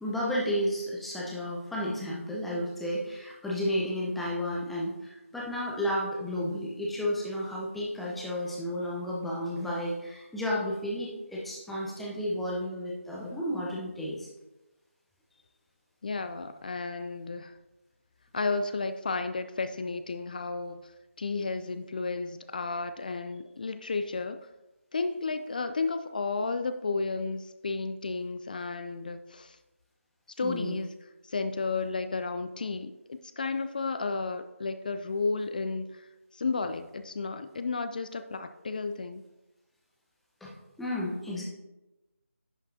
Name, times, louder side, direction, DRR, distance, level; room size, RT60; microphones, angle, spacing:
voice 1, 0.0-14.3 30.4-30.8 40.4-41.4, equal, ahead, -5 dB, 0.8 m, -32 dB
voice 2, 16.0-17.5 18.3-20.9 21.2-24.4 24.9-29.6 30.4-30.9 31.2-36.1 36.3-39.2, left 4 dB, 35° left, 10 dB, 0.3 m, -32 dB
10.5 x 5.6 x 2.7 m, 1.0 s
figure-of-eight pair, 160°, 8 cm